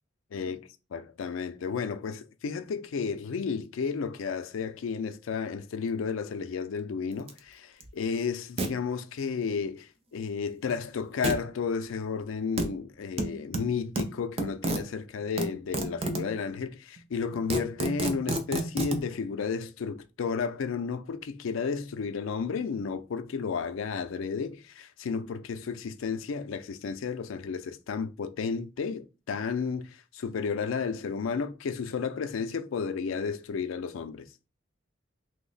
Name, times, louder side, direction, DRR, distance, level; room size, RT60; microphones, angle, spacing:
voice 1, 0.3-34.3, left 5 dB, 90° left, 0.4 m, -32 dB
sound 1, 7.3-7.4 7.8-7.9 8.6-8.7 11.2-11.4 12.6-12.7 13.2-14.8 15.4-16.3 17.0-17.1 17.3-19.0, right 2 dB, 30° right, 0.4 m, -30 dB
3.0 x 2.1 x 3.8 m
head